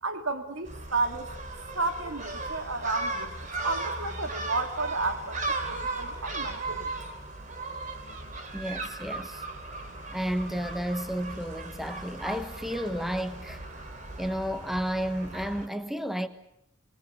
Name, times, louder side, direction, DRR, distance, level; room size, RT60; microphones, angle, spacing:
voice 1, 0.0-1.3 1.7-6.9, right 3 dB, 80° right, 2.7 m, -32 dB
Gull seagull, 0.7-15.7, right 2 dB, 35° right, 2.9 m, -37 dB
voice 2, 8.5-9.4 10.1-13.6 14.2-16.3, equal, ahead, 1.2 m, -32 dB
27.0 x 21.0 x 8.2 m
head